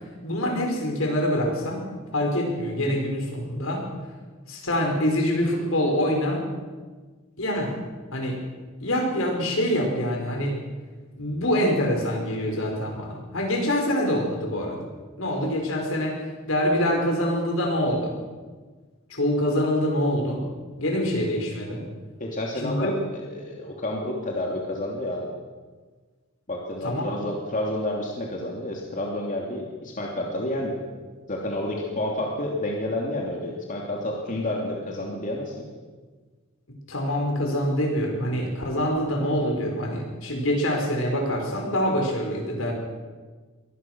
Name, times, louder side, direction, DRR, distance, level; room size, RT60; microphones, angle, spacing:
voice 1, 0.2-3.9 4.5-6.5 7.4-7.7 8.1-8.4 8.8-10.6 11.2-14.8 15.2-16.2 16.5-18.1 19.1-20.5 20.8-21.8 22.6-23.0 26.8-27.1 36.9-42.7, equal, 75° left, 2 dB, 5.3 m, -25 dB
voice 2, 22.2-25.3 26.5-30.8 31.3-35.7, left 1 dB, 40° left, -1 dB, 2.9 m, -30 dB
23.5 x 18.0 x 6.3 m, 1.4 s
head